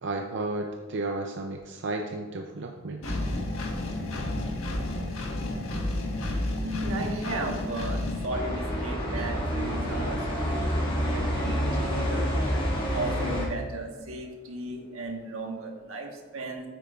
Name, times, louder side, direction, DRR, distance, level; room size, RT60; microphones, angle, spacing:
voice 1, 0.0-3.2, right 2 dB, 60° right, 3 dB, 0.5 m, -33 dB
Engine, 3.0-8.3, left 1 dB, 80° left, 1.4 m, -31 dB
voice 2, 6.6-12.3 12.9-16.6, right 2 dB, 85° right, 1 dB, 1.4 m, -35 dB
sound 1, 8.3-13.4, equal, 25° left, 2.0 m, -28 dB
9.1 x 8.7 x 2.4 m, 1.4 s
head